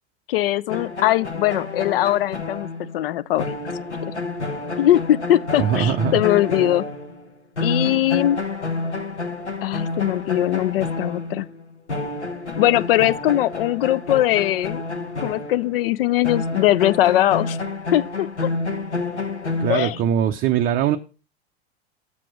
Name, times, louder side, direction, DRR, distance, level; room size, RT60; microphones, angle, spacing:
voice 1, 0.3-3.5 4.8-6.9 7.6-8.4 9.6-11.5 12.6-14.8 15.2-17.6 17.9-18.5 19.7-20.0, left 14 dB, 60° left, 0.5 m, -20 dB
sound 1, 0.7-7.3 7.6-15.8 16.2-20.2, left 3 dB, 90° left, 1.1 m, -29 dB
voice 2, 5.6-6.2 19.6-21.0, right 9 dB, 25° right, 0.5 m, -21 dB
7.6 x 6.1 x 6.0 m
figure-of-eight pair, 85°, 33 cm